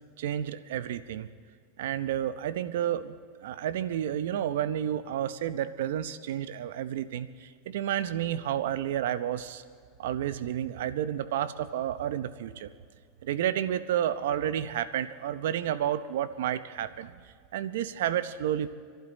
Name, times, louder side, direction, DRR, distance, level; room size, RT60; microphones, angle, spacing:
voice 1, 0.2-1.3 1.8-3.1 3.4-9.6 10.0-12.7 13.2-17.1 17.5-18.7, right 10 dB, 75° right, 13 dB, 0.7 m, -31 dB
27.0 x 11.5 x 4.1 m, 2.1 s
supercardioid pair, 120°, 0 cm